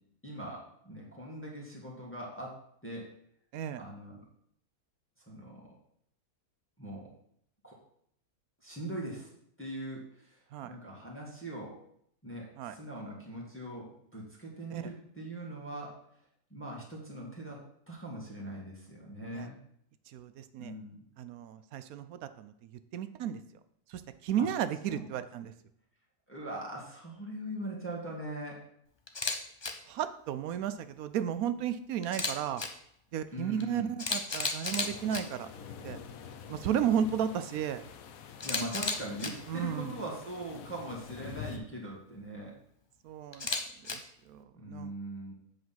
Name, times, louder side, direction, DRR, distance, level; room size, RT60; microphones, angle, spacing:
voice 1, 0.2-3.1 3.8-4.2 5.3-5.7 6.8-7.1 7.6-7.8 8.6-9.3 9.6-11.8 12.2-16.0 16.5-19.6 20.6-21.0 24.4-24.5 24.9-25.1 26.3-28.6 33.3-33.9 38.4-42.6 44.5-45.3, right 1 dB, 10° left, -4 dB, 1.8 m, -41 dB
voice 2, 3.5-3.8 10.5-10.7 12.6-12.8 14.7-14.8 19.3-19.5 20.1-20.7 21.2-23.4 23.9-25.5 29.9-32.6 33.1-35.5 35.8-36.0 36.5-37.8 39.5-40.0 43.0-43.5 43.9-44.0 44.3-44.9, right 9 dB, 75° right, 12 dB, 1.1 m, -34 dB
Camera, 29.1-29.4 29.6-29.7 32.0-32.7 33.6-33.7 34.0-35.2 38.4-39.3 43.3-43.9, left 3 dB, 35° left, 0.4 m, -32 dB
sound 1, 34.8-41.6, left 7 dB, 70° left, 1.1 m, -47 dB
7.9 x 5.2 x 5.7 m, 0.71 s
omnidirectional pair, 1.6 m